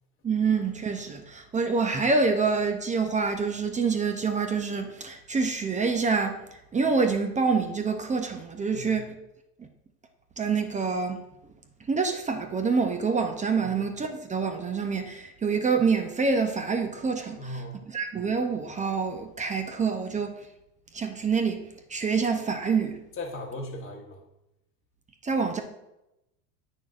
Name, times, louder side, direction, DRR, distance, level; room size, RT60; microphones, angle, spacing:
voice 1, 0.2-6.4 6.7-9.1 9.6-9.7 10.4-11.2 11.9-17.6 17.9-20.3 20.9-23.0 25.2-25.6, right 5 dB, 15° right, 5 dB, 0.5 m, -26 dB
voice 2, 17.4-17.8 23.2-24.2, left 1 dB, 25° left, -2 dB, 1.0 m, -37 dB
8.5 x 6.3 x 2.4 m, 0.88 s
hypercardioid pair, 100°, 50 cm